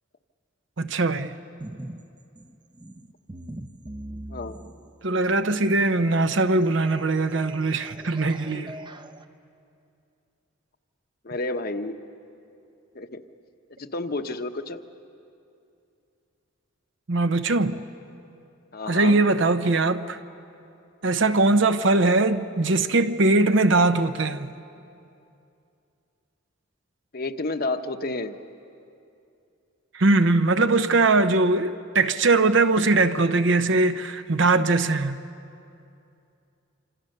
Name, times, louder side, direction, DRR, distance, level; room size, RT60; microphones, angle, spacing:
voice 1, 0.8-1.3 5.0-8.7 17.1-17.8 18.9-20.2 21.0-24.5 29.9-35.2, right 2 dB, 65° right, 0.8 m, -21 dB
sound 1, 1.6-2.0 2.4-9.2, right 1 dB, 25° right, 0.7 m, -42 dB
voice 2, 11.2-11.9 12.9-13.2 13.8-14.8 18.7-19.2 27.1-28.4, left 2 dB, 50° left, 0.9 m, -30 dB
26.5 x 26.0 x 6.7 m
head